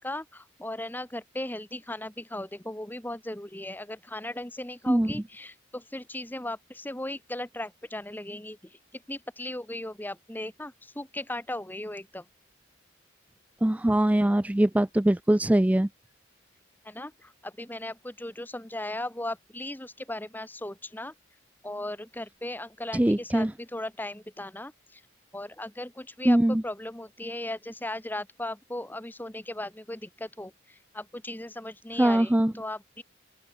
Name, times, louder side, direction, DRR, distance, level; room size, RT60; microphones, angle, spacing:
voice 1, 0.0-12.2 16.8-21.1 21.6-25.0 25.3-33.0, left 1 dB, 10° left, 1.2 m, -37 dB
voice 2, 13.6-15.9 22.9-23.5 26.3-26.6 32.0-32.5, right 1 dB, 5° right, 0.3 m, -22 dB
open air
head